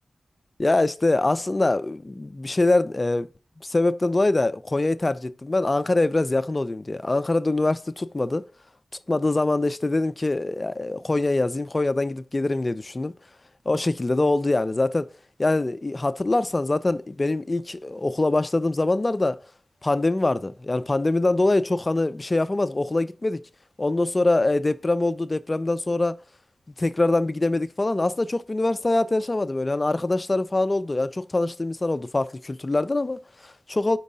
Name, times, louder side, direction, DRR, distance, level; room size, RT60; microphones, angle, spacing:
voice 1, 0.6-3.3 3.6-8.4 9.1-13.1 13.7-15.1 15.4-19.4 19.8-23.4 23.8-26.2 26.8-34.0, left 2 dB, 30° left, 0.4 m, -24 dB
5.1 x 4.6 x 5.3 m
wide cardioid pair, 80°, 0 cm